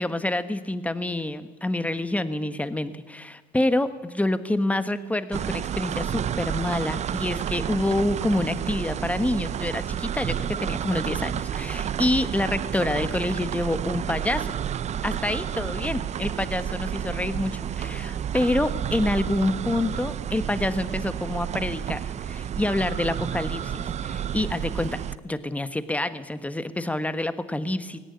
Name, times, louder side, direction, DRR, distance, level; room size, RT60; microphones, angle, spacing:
voice 1, 0.0-14.5 15.0-28.0, left 1 dB, 10° left, 12 dB, 1.2 m, -27 dB
sound 1, 5.3-25.2, right 9 dB, 40° right, 0.6 m, -30 dB
18.0 x 17.5 x 9.6 m, 1.3 s
cardioid pair, 110°, 17 cm